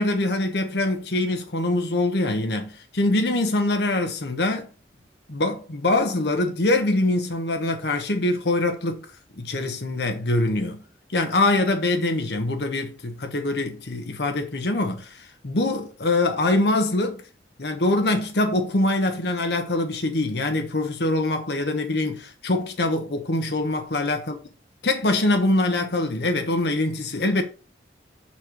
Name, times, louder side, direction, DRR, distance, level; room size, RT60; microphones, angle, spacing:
voice 1, 0.0-4.7 5.3-9.0 9.4-10.8 11.1-17.2 17.6-24.3 24.8-27.4, left 2 dB, 65° left, 1.0 m, -24 dB
6.5 x 4.2 x 4.6 m
head